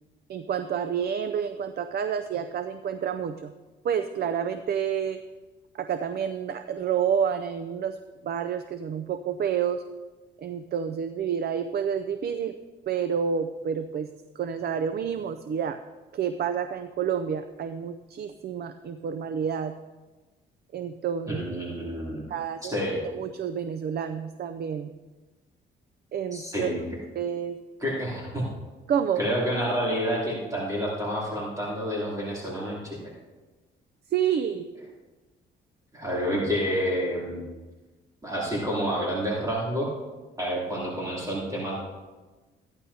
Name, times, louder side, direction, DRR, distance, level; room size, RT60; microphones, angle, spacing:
voice 1, 0.3-3.5 3.8-5.2 5.7-8.0 8.2-9.8 10.4-12.6 12.9-15.8 16.1-19.7 20.7-21.4 22.3-22.8 23.1-24.9 26.1-26.7 27.2-27.6 28.9-29.2 34.1-34.7, right 8 dB, 55° right, 9 dB, 0.5 m, -29 dB
voice 2, 21.3-22.2 22.6-23.0 26.3-26.8 27.8-28.4 29.2-33.1 35.9-37.5 38.2-39.9 40.4-41.8, equal, 15° right, -6 dB, 3.0 m, -29 dB
15.0 x 10.5 x 2.8 m, 1.2 s
cardioid pair, 90°, 20 cm